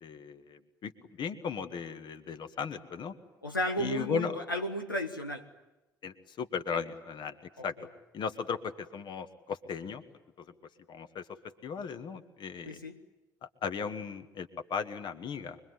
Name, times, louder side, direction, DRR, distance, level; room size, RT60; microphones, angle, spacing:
voice 1, 0.0-0.9 1.2-3.1 3.8-4.4 6.0-7.4 7.6-7.7 8.1-10.0 10.4-10.5 10.9-11.3 11.6-12.8 13.4-15.6, left 6 dB, 45° left, 9 dB, 1.8 m, -36 dB
voice 2, 3.4-5.5 7.6-7.7 12.6-13.0, equal, 90° left, 2 dB, 1.2 m, -33 dB
24.5 x 23.0 x 9.7 m, 1.0 s
figure-of-eight pair, 55°, 11 cm